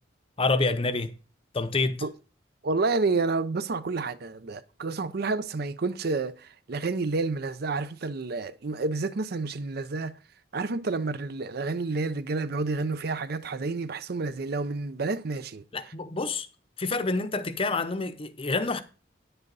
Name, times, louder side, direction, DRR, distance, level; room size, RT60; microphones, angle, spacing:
voice 1, 0.4-1.1 1.5-2.0 15.7-16.5 16.8-18.8, left 3 dB, 30° left, 0.7 m, -27 dB
voice 2, 2.6-10.1 10.5-15.9, right 3 dB, 55° right, 0.6 m, -29 dB
9.9 x 7.9 x 4.0 m
head